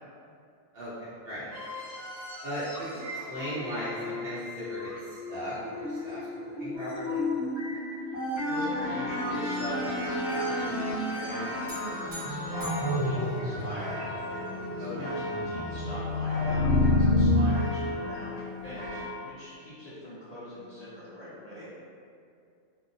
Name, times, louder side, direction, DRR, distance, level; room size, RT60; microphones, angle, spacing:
voice 1, 0.7-1.5 2.4-7.2 14.8-15.1, equal, 50° right, -12 dB, 1.0 m, -37 dB
sound 1, 1.5-17.3, left 2 dB, ahead, 1.0 m, -31 dB
voice 2, 8.0-14.3 14.8-15.1 15.4-21.7, equal, 45° left, -14 dB, 0.5 m, -42 dB
sound 2, 8.5-19.1, left 1 dB, 85° left, 1.0 m, -37 dB
sound 3, 11.7-14.1, left 1 dB, 75° right, 1.2 m, -44 dB
2.7 x 2.0 x 2.6 m, 2.4 s
omnidirectional pair, 1.4 m